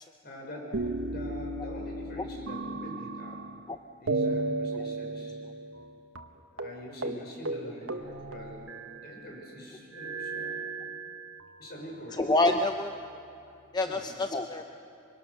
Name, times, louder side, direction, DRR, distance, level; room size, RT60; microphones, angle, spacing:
voice 1, 0.2-3.4 4.0-5.4 6.5-10.6 11.6-12.2 13.8-14.1, equal, 50° left, 0 dB, 5.7 m, -44 dB
sound 1, 0.7-3.7 4.1-5.9 6.2-6.3 6.6-6.8 7.0-7.2 7.5-9.2 9.9-11.5 12.2-13.1, right 2 dB, 80° right, 1.2 m, -35 dB
voice 2, 12.2-12.9 13.7-14.6, left 2 dB, 20° left, 6 dB, 0.6 m, -27 dB
24.5 x 23.5 x 6.5 m, 2.6 s
head